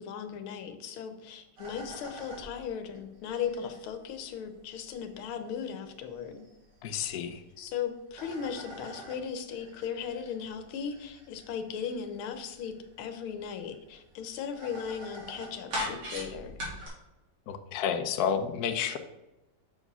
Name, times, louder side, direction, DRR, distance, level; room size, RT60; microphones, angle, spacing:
voice 1, 0.0-6.5 7.6-16.6, left 7 dB, 85° left, 8 dB, 1.7 m, -37 dB
sound 1, 1.6-7.6 7.9-16.9, equal, 90° right, 3.5 m, -43 dB
voice 2, 6.8-7.4 17.5-19.0, left 8 dB, 65° left, 8 dB, 0.9 m, -30 dB
6.7 x 4.9 x 5.4 m, 0.97 s
omnidirectional pair, 2.3 m